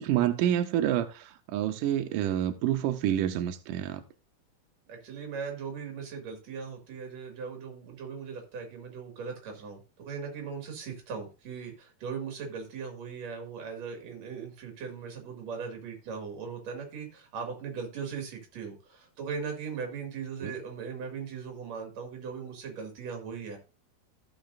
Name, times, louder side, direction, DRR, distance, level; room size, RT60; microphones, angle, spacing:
voice 1, 0.0-4.0 20.4-20.6, right 11 dB, 85° right, 1.9 m, -28 dB
voice 2, 4.9-23.6, right 6 dB, 50° right, 2.9 m, -39 dB
15.0 x 5.7 x 2.6 m
omnidirectional pair, 4.5 m